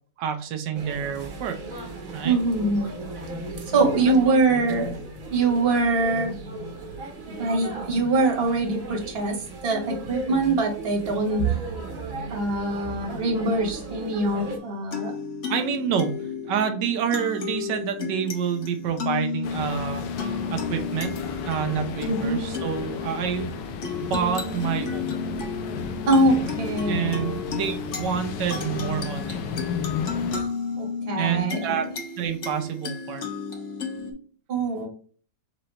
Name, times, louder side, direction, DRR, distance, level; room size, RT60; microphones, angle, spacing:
voice 1, 0.2-1.6 2.1-2.4 4.0-4.4 15.5-16.1 16.5-20.0 20.5-21.1 21.4-23.5 24.0-25.1 26.8-29.4 31.2-31.9 32.2-33.2, right 8 dB, 90° right, 6 dB, 1.4 m, -28 dB
sound 1, 0.7-14.6, right 3 dB, 55° right, 1.4 m, -35 dB
voice 2, 2.2-2.9 3.7-4.9 5.3-6.4 7.3-11.5 12.3-15.1 22.1-22.4 26.1-27.3 30.3-30.5 30.8-31.7 34.5-34.9, right 2 dB, 40° right, 2 dB, 1.4 m, -23 dB
sound 2, 14.4-34.1, left 5 dB, 50° left, 1.2 m, -32 dB
sound 3, 19.4-30.4, left 7 dB, 80° left, 1.3 m, -34 dB
4.1 x 3.9 x 3.1 m, 0.43 s
omnidirectional pair, 1.8 m